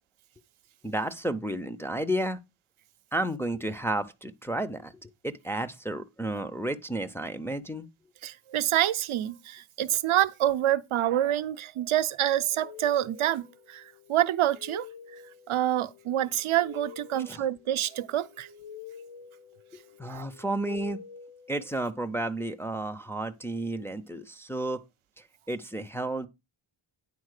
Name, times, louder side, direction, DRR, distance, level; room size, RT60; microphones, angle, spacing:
voice 1, 0.8-2.4 3.1-7.9 17.1-17.4 20.0-21.0 21.5-24.8 25.5-26.3, right 1 dB, 5° left, 0.5 m, -32 dB
voice 2, 8.2-14.9 15.5-18.5 20.0-20.3, right 12 dB, 75° right, 0.7 m, -27 dB
sound 1, 12.4-22.1, left 8 dB, 70° left, 1.9 m, -48 dB
9.6 x 4.1 x 6.5 m
wide cardioid pair, 155°, 49 cm